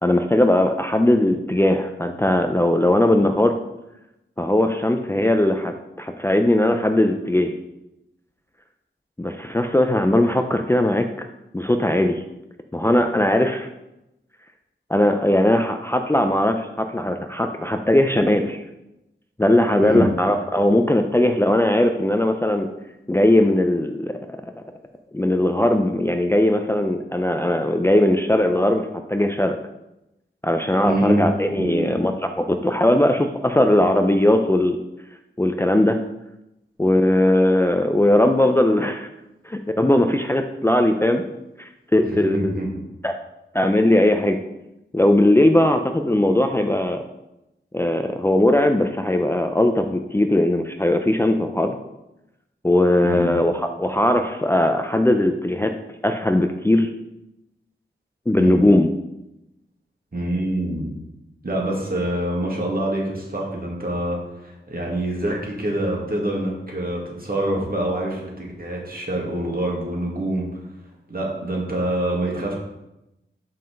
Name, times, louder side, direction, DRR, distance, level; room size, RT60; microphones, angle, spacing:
voice 1, 0.0-3.5 4.4-7.6 9.2-11.3 11.5-12.2 12.7-13.7 14.9-18.6 19.4-22.7 23.1-24.2 25.1-29.6 30.4-34.8 35.4-36.0 36.8-39.1 39.4-41.2 41.6-42.5 43.0-43.1 43.5-44.4 44.9-47.0 47.7-51.8 52.6-55.7 56.0-56.9 58.3-58.9, left 1 dB, 10° left, 5 dB, 0.5 m, -19 dB
voice 2, 30.8-31.3 31.6-31.9 42.0-42.7 53.0-53.3 58.4-58.6 60.1-60.9 61.4-70.5 71.1-72.5, right 1 dB, 50° right, -2 dB, 2.1 m, -25 dB
5.7 x 5.4 x 5.2 m, 0.92 s
wide cardioid pair, 60°, 20 cm